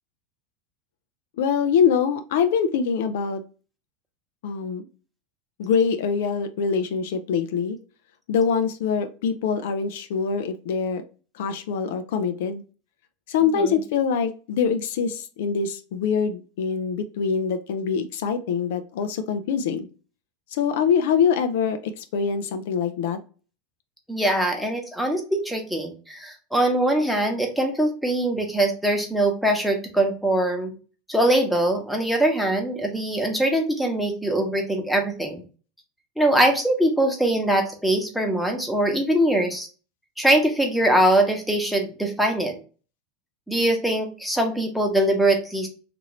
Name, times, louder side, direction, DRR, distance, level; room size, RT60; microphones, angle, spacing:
voice 1, 1.4-3.4 4.4-4.9 5.6-7.8 8.3-11.0 11.3-12.6 13.3-19.9 20.5-23.2, left 6 dB, 75° left, 9 dB, 0.4 m, -24 dB
voice 2, 24.1-30.7 31.1-35.4 36.2-39.7 40.2-42.5 43.5-45.7, right 1 dB, ahead, 2 dB, 0.9 m, -22 dB
2.8 x 2.5 x 3.0 m, 0.36 s
hypercardioid pair, 105°, 0 cm